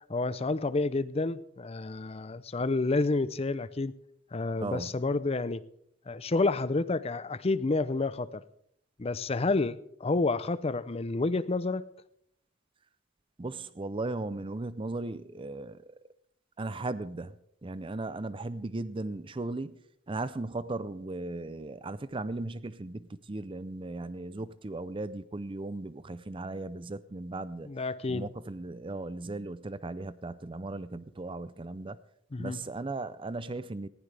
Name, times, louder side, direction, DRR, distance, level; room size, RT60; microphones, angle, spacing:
voice 1, 0.1-3.9 4.3-5.6 6.1-8.4 9.0-11.8 27.7-28.3 32.3-32.6, left 3 dB, 35° left, 16 dB, 0.6 m, -29 dB
voice 2, 4.6-5.0 13.4-15.9 16.6-19.8 20.1-27.7 28.1-32.0 32.4-33.9, right 2 dB, 30° right, 15 dB, 0.5 m, -37 dB
19.5 x 15.0 x 3.4 m, 0.71 s
head